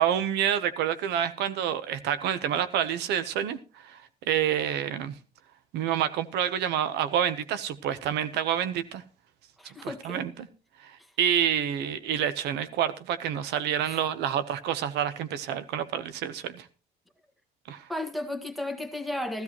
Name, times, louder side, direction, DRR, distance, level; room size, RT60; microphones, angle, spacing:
voice 1, 0.0-5.1 5.7-9.0 9.6-10.3 10.8-16.7 17.7-17.9, right 9 dB, 85° right, 0.9 m, -28 dB
voice 2, 9.6-10.2 13.8-14.0 17.9-19.4, left 1 dB, ahead, 1.6 m, -34 dB
15.0 x 13.5 x 3.0 m
cardioid pair, 110°, 17 cm